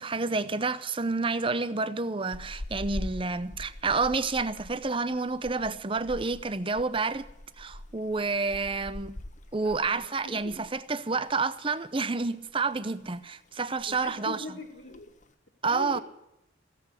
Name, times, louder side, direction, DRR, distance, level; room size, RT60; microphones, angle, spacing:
voice 1, 0.0-7.3 7.6-9.2 9.5-14.4 15.6-16.0, right 4 dB, 25° right, 0.7 m, -29 dB
sound 1, 2.3-10.8 11.1-11.3 11.7-12.6 12.9-13.2 13.5-13.6 13.8-14.2 14.8-15.3, left 1 dB, 40° left, 1.2 m, -43 dB
voice 2, 9.6-10.6 13.9-15.1 15.6-16.0, left 2 dB, 70° left, 2.1 m, -41 dB
17.0 x 8.3 x 9.8 m
head